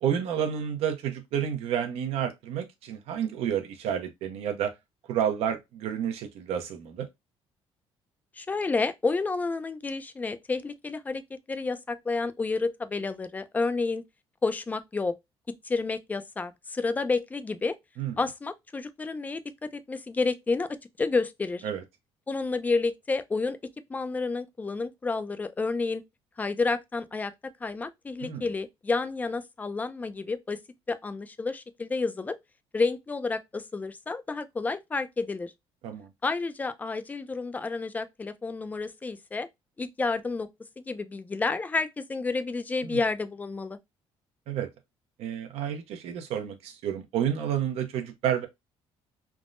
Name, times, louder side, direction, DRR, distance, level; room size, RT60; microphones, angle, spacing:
voice 1, 0.0-4.7 5.1-7.1 18.0-18.1 21.6-21.8 28.2-28.4 35.8-36.1 42.8-43.0 44.5-44.7 45.2-48.5, right 9 dB, 80° right, 0.6 m, -30 dB
voice 2, 8.4-14.0 14.4-15.2 15.6-17.8 18.2-19.4 19.9-20.7 21.0-21.6 22.3-23.6 23.9-26.0 26.4-27.3 27.6-30.6 30.9-32.4 32.7-35.5 36.2-39.5 39.8-40.5 40.8-43.8, left 3 dB, 15° left, 0.3 m, -30 dB
3.4 x 2.0 x 2.4 m
cardioid pair, 135°, 10 cm